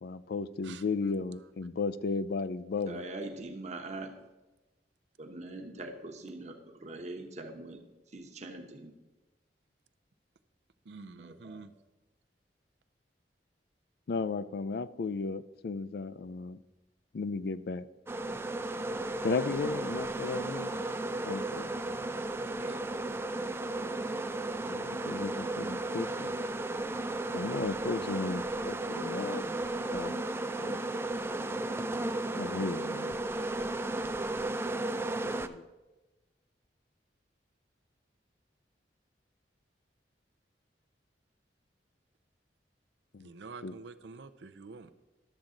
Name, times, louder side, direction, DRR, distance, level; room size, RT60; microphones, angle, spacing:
voice 1, 0.0-3.1 14.1-16.6 17.1-17.9 19.2-20.7 21.2-21.7 24.7-26.4 27.3-29.5 29.9-30.3 30.6-30.8 32.3-33.2 35.2-35.7 43.1-43.3 43.6-43.7, left 4 dB, 65° left, 15 dB, 0.4 m, -35 dB
voice 2, 2.9-4.1 5.2-6.5 6.8-7.8 8.1-8.9 11.2-11.6, right 2 dB, 40° right, 3 dB, 1.0 m, -42 dB
voice 3, 10.9-11.7 22.6-22.9 43.2-44.9, right 4 dB, 80° right, 11 dB, 0.5 m, -47 dB
sound 1, 18.1-35.5, right 2 dB, 15° right, 0.3 m, -34 dB
12.0 x 7.2 x 3.8 m, 1.1 s
head